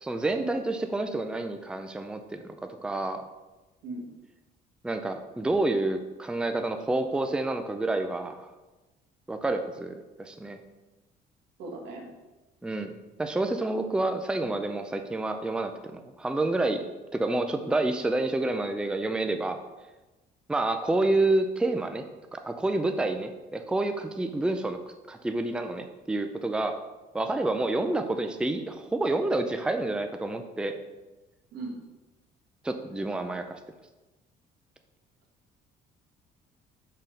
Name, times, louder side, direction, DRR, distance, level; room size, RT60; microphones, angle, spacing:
voice 1, 0.0-2.5 2.8-3.2 4.8-8.5 9.3-10.6 12.6-16.8 17.1-19.6 20.5-22.0 22.3-24.8 25.1-26.7 27.1-30.7 32.6-33.6, right 2 dB, 5° right, 7 dB, 0.4 m, -28 dB
voice 2, 11.6-12.1 27.7-27.9 31.5-31.8, right 2 dB, 85° right, -1 dB, 1.6 m, -38 dB
6.0 x 4.1 x 5.1 m, 1.1 s
cardioid pair, 110°, 17 cm